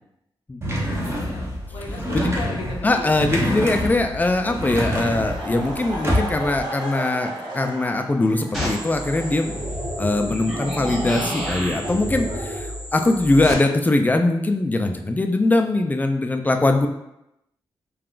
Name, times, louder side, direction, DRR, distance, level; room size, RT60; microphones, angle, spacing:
sound 1, 0.6-6.6, equal, 30° right, 0.7 m, -27 dB
voice 1, 0.9-3.7 13.0-14.0, left 3 dB, 85° left, -1 dB, 0.6 m, -37 dB
voice 2, 2.8-16.9, left 2 dB, 20° left, 5 dB, 0.3 m, -21 dB
Laughter, 4.7-13.2, right 1 dB, 60° right, 0.8 m, -36 dB
sound 2, 8.5-13.5, equal, 5° right, 1.2 m, -29 dB
3.5 x 2.3 x 2.4 m, 0.86 s
cardioid pair, 75°, 9 cm